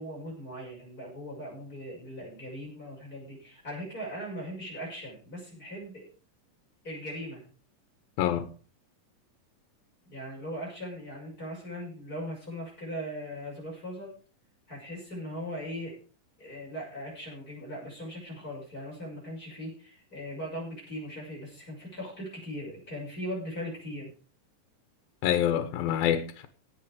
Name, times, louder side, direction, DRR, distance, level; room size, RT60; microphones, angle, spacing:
voice 1, 0.0-6.0 6.8-7.4 10.1-14.1 14.7-15.9 16.4-24.1, equal, 25° left, 6.9 m, -39 dB
voice 2, 8.2-8.5 25.2-26.5, left 10 dB, 85° left, 2.9 m, -26 dB
17.5 x 7.7 x 5.0 m
omnidirectional pair, 4.0 m